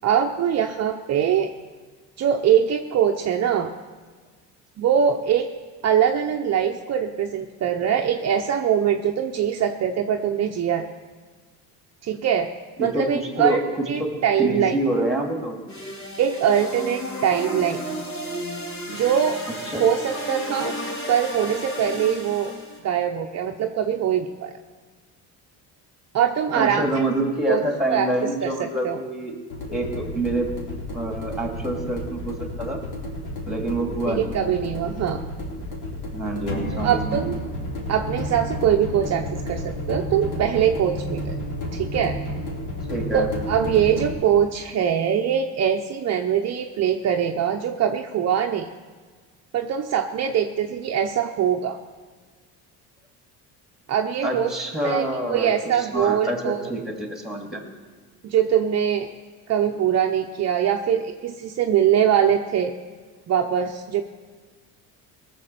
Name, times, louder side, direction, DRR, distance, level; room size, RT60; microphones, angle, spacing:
voice 1, 0.0-1.5 2.2-3.7 4.8-5.5 5.8-10.8 12.0-12.5 12.8-13.6 13.9-14.8 16.2-17.8 18.9-19.4 19.8-20.7 21.1-22.5 22.8-24.5 26.1-26.8 27.5-27.6 27.9-28.1 28.4-29.0 34.1-35.2 36.7-37.4 37.9-41.3 41.7-42.2 43.1-48.7 49.5-51.8 53.9-54.5 54.8-56.7 58.2-59.1 59.5-62.7 63.3-64.0, right 9 dB, 40° right, 3 dB, 0.8 m, -22 dB
voice 2, 12.8-14.1 14.4-15.6 19.7-19.8 26.5-29.4 29.7-30.5 30.9-32.8 33.5-34.6 36.1-37.2 42.9-43.3 54.2-57.6, right 1 dB, ahead, 2 dB, 2.5 m, -27 dB
sound 1, 15.7-22.8, equal, 45° left, 3.6 m, -33 dB
sound 2, 29.5-44.1, left 1 dB, 65° left, 3.9 m, -31 dB
18.0 x 6.8 x 6.9 m, 1.5 s
cardioid pair, 110°, 39 cm